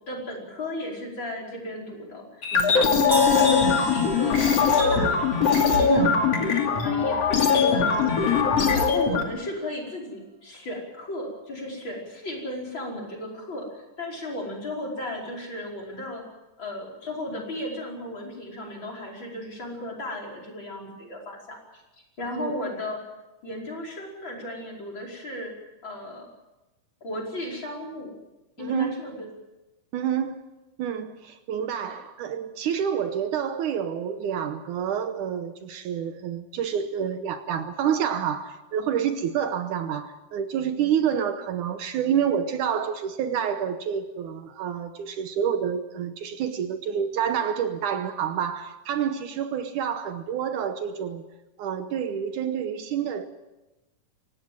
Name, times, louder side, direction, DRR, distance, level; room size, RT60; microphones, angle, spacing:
voice 1, 0.0-5.3 5.9-6.2 6.8-7.2 7.7-8.1 8.7-16.2 16.6-21.8 22.2-23.0 23.4-25.5 25.8-26.3 27.0-28.1 28.6-29.3 31.9-32.0, left 1 dB, 35° left, 5.7 m, -35 dB
sound 1, 2.4-9.2, left 5 dB, 50° left, 3.5 m, -21 dB
voice 2, 2.5-2.9 5.8-6.2 7.7-8.0 22.4-22.5 28.6-29.0 29.9-30.4 30.8-51.2 51.6-53.3, right 8 dB, 70° right, 2.4 m, -28 dB
sound 2, 3.1-7.0, left 2 dB, 15° left, 2.9 m, -30 dB
24.5 x 18.5 x 7.5 m
omnidirectional pair, 3.8 m